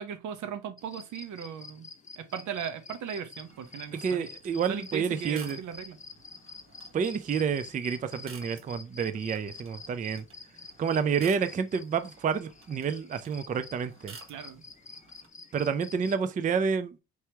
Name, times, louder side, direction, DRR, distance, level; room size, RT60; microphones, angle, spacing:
voice 1, 0.0-1.9 2.2-4.3 4.7-6.0 14.3-14.6, right 8 dB, 75° right, 0.8 m, -37 dB
sound 1, 0.8-16.1, left 4 dB, 25° left, 0.8 m, -49 dB
sound 2, 3.3-15.3, right 5 dB, 45° right, 1.0 m, -54 dB
voice 2, 4.0-5.6 6.9-10.3 10.8-14.2 15.5-17.0, right 6 dB, 25° right, 0.4 m, -29 dB
4.6 x 3.0 x 3.3 m
cardioid pair, 90°, 30 cm